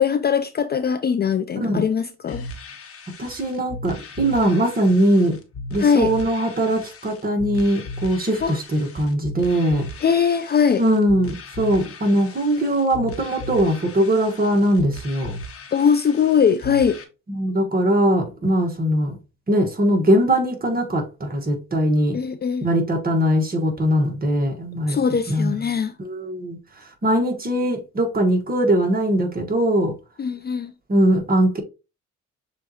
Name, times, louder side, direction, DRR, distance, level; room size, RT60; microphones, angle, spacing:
voice 1, 0.0-2.4 5.8-6.1 8.4-8.6 10.0-10.8 15.7-17.0 22.1-22.7 24.9-25.9 30.2-30.7, left 7 dB, 35° left, 0.4 m, -20 dB
sound 1, 2.3-17.0, left 2 dB, 50° left, 1.3 m, -37 dB
voice 2, 3.2-5.4 5.7-9.8 10.8-15.3 17.3-19.1 19.5-22.2 22.6-25.0 25.3-25.6 26.0-26.6 27.0-29.9 30.9-31.6, right 1 dB, 30° right, 1.4 m, -21 dB
6.9 x 2.6 x 2.8 m
cardioid pair, 90°, 30 cm